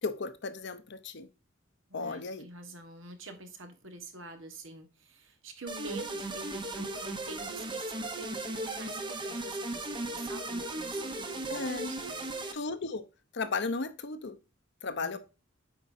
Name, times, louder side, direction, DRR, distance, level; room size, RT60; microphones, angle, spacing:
voice 1, 0.0-1.3 1.9-2.5 11.5-11.9 12.5-13.0 13.3-14.4 14.8-15.2, left 4 dB, 60° left, 12 dB, 0.8 m, -35 dB
voice 2, 1.9-12.6 15.0-15.2, right 2 dB, 70° right, 6 dB, 1.6 m, -47 dB
sound 1, 5.7-12.5, right 2 dB, 25° right, 0.9 m, -36 dB
8.4 x 5.2 x 2.7 m, 0.30 s
head